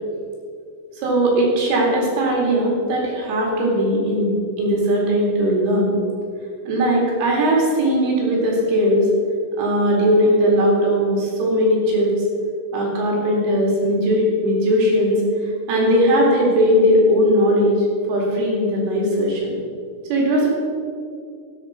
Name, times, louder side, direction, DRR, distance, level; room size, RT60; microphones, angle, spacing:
voice 1, 1.0-4.3 4.6-6.0 6.7-9.1 9.6-12.1 12.7-15.2 15.7-17.8 18.1-19.5 20.1-20.5, equal, 75° right, -3 dB, 5.0 m, -18 dB
13.5 x 10.5 x 4.5 m, 2.3 s
omnidirectional pair, 5.8 m